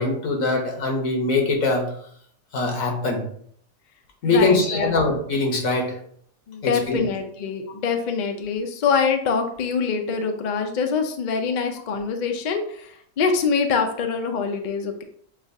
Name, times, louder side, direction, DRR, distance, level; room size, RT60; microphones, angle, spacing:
voice 1, 0.0-1.9 2.5-3.2 4.2-6.0 6.6-7.0, left 3 dB, 80° left, 2 dB, 1.4 m, -22 dB
voice 2, 4.2-4.9 6.5-15.0, left 5 dB, 60° left, 5 dB, 0.4 m, -24 dB
7.0 x 2.4 x 2.7 m, 0.64 s
omnidirectional pair, 1.4 m